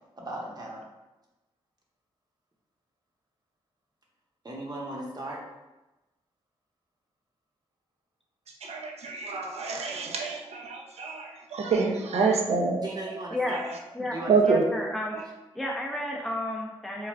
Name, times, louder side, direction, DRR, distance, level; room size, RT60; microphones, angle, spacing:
voice 1, 0.2-0.8 4.4-5.4 12.8-13.6 14.1-14.6, right 2 dB, 35° right, -2 dB, 0.8 m, -37 dB
voice 2, 8.5-13.2 13.5-13.6 14.0-14.7 15.1-15.3, right 4 dB, 65° right, 1 dB, 0.5 m, -27 dB
voice 3, 14.5-15.3 15.5-17.1, left 1 dB, ahead, -2 dB, 0.5 m, -32 dB
3.2 x 2.4 x 2.3 m, 1.0 s
supercardioid pair, 40°, 12 cm